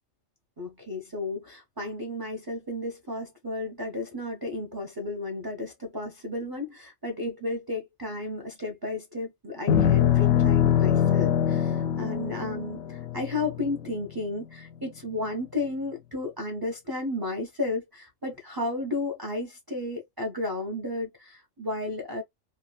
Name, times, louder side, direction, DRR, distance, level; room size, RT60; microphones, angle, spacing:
voice 1, 0.6-22.2, left 2 dB, 25° right, 0.5 m, -33 dB
sound 1, 9.7-14.1, left 9 dB, 85° left, 1.0 m, -23 dB
3.3 x 2.2 x 2.3 m
omnidirectional pair, 1.4 m